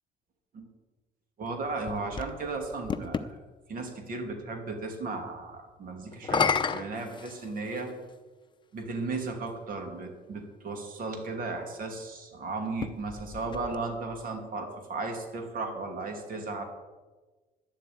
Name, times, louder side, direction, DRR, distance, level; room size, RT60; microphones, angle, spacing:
voice 1, 1.4-3.4 3.7-7.9 8.7-16.6, right 3 dB, 55° right, 4 dB, 2.7 m, -35 dB
sound 1, 1.5-3.3 6.1-7.9 8.8-8.9 12.6-14.2, left 6 dB, 30° left, 0.7 m, -32 dB
11.5 x 7.4 x 9.4 m, 1.3 s
cardioid pair, 110°, 17 cm